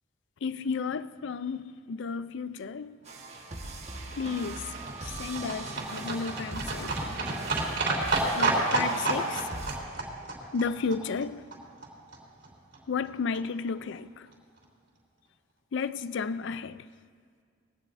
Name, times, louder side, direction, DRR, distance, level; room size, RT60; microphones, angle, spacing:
voice 1, 0.4-3.0 4.2-4.6 5.2-7.2 8.3-9.4 10.5-11.4 12.9-14.3 15.7-16.8, left 5 dB, 65° left, 0.4 m, -33 dB
sound 1, 3.0-9.8, right 3 dB, 35° right, 1.4 m, -41 dB
Livestock farm animals working animals, 3.6-11.9 12.1-12.2 12.4-12.5 12.7-12.8 13.0-13.1 13.3-13.4 13.7-13.8 14.0-14.1 14.3-14.4, right 2 dB, 60° right, 3.1 m, -30 dB
21.0 x 16.5 x 2.6 m
head